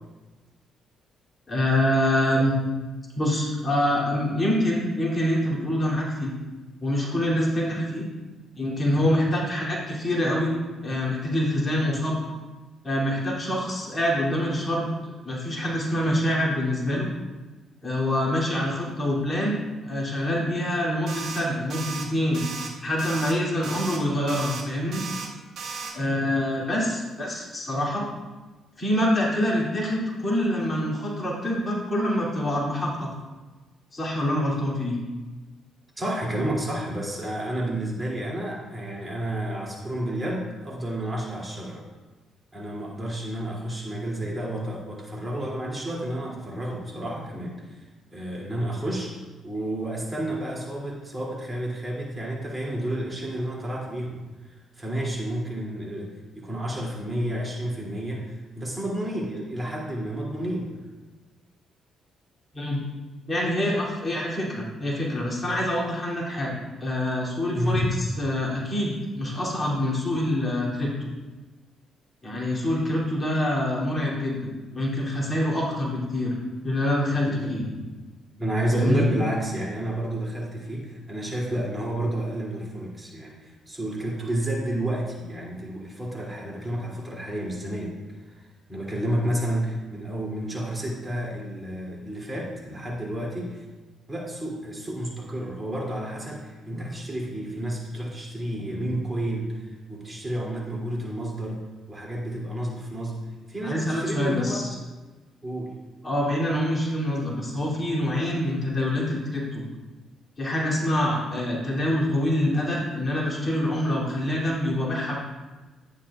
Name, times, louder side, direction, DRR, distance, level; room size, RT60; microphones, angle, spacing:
voice 1, 1.5-2.5 3.1-6.3 6.8-8.0 8.6-10.5 10.8-12.2 12.8-14.9 15.2-17.1 17.8-19.6 19.8-22.4 22.8-25.0 25.9-28.0 28.8-33.1 33.9-35.0 62.5-62.8 63.3-66.5 66.8-71.1 72.2-76.3 76.6-77.6 78.7-79.1 103.6-104.8 106.0-109.6 110.4-115.1, left 1 dB, 30° left, -5 dB, 3.0 m, -25 dB
sound 1, 21.1-21.4 21.7-22.0 22.3-22.7 23.0-23.3 23.6-24.0 24.3-24.6 24.9-25.3 25.6-25.9, right 5 dB, 65° right, 1.9 m, -35 dB
voice 2, 36.0-41.9 42.5-47.8 48.1-49.2 49.4-54.2 54.4-60.7 67.5-67.7 75.3-75.4 77.2-77.8 78.4-88.0 88.3-93.6 94.1-101.6 101.9-104.6 105.4-105.7, right 1 dB, 15° right, -4 dB, 2.9 m, -30 dB
11.5 x 9.7 x 2.5 m, 1.2 s
cardioid pair, 90°, 0 cm